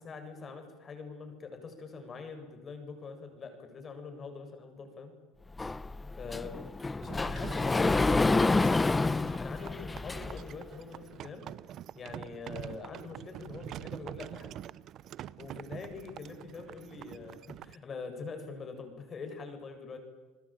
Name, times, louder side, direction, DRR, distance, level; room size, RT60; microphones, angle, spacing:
voice 1, 0.0-5.1 6.2-9.0 9.4-11.5 12.0-14.5 15.4-20.0, left 4 dB, 35° left, 6 dB, 7.6 m, -43 dB
Sliding door, 5.6-10.5, left 3 dB, 15° left, 0.8 m, -28 dB
sound 1, 7.0-17.8, right 11 dB, 50° right, 0.8 m, -46 dB
30.0 x 20.5 x 9.1 m, 1.2 s
supercardioid pair, 90°, 0 cm